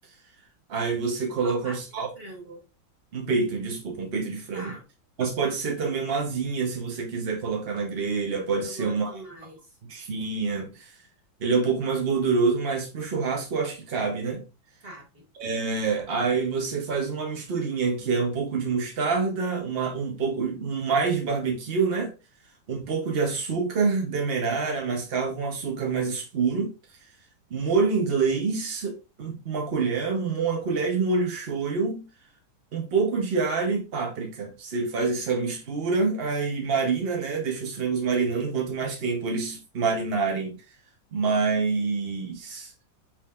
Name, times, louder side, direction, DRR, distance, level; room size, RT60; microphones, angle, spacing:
voice 1, 0.7-2.1 3.1-4.7 5.2-9.1 9.9-10.9 11.4-14.4 15.4-22.1 22.7-26.7 27.5-32.1 32.7-40.6 41.1-42.7, right 4 dB, 70° right, 0.5 m, -26 dB
voice 2, 1.4-2.6 4.5-4.9 8.6-9.7 14.8-15.2, right 1 dB, 30° right, 1.6 m, -42 dB
5.3 x 3.6 x 2.4 m
omnidirectional pair, 2.2 m